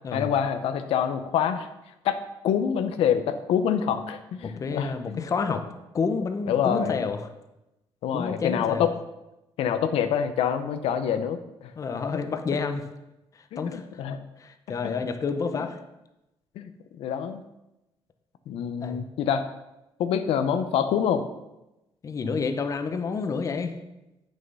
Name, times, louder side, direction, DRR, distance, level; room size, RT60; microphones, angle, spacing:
voice 1, 0.1-1.7 2.0-2.2 2.4-5.5 6.5-7.0 8.0-8.9 9.6-11.7 13.5-14.2 15.5-15.6 16.6-16.7 17.0-17.4 18.5-19.4 20.0-21.2, left 8 dB, 90° left, 9 dB, 0.7 m, -26 dB
voice 2, 4.4-5.6 5.9-7.3 8.1-8.9 11.8-12.8 13.3-14.0 14.4-15.8 18.8-19.0 22.0-23.8, left 5 dB, 35° left, 8 dB, 0.8 m, -29 dB
8.5 x 6.5 x 5.4 m, 0.94 s
cardioid pair, 145°, 10 cm